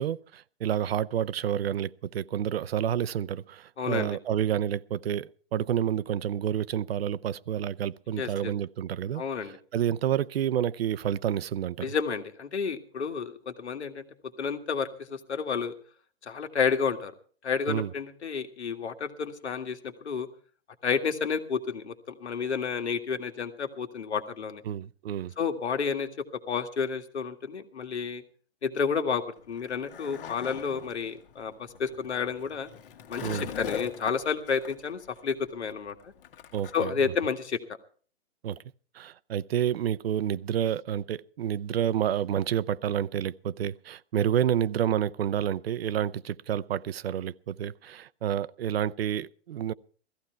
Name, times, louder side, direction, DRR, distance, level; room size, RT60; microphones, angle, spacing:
voice 1, 0.0-11.9 17.7-17.9 24.6-25.3 33.2-33.5 36.5-36.9 38.4-38.6 38.9-49.7, right 10 dB, 65° right, 0.7 m, -29 dB
voice 2, 3.8-4.2 8.2-8.5 9.1-9.6 11.8-14.0 14.4-15.7 16.2-17.1 17.4-20.3 20.8-24.6 25.4-26.1 26.5-28.2 28.6-32.7 33.1-36.1 36.7-37.6, left 6 dB, 85° left, 2.0 m, -30 dB
Skateboard, 29.4-36.9, left 8 dB, 55° left, 1.7 m, -42 dB
16.0 x 15.0 x 4.6 m
hypercardioid pair, 145°, 33 cm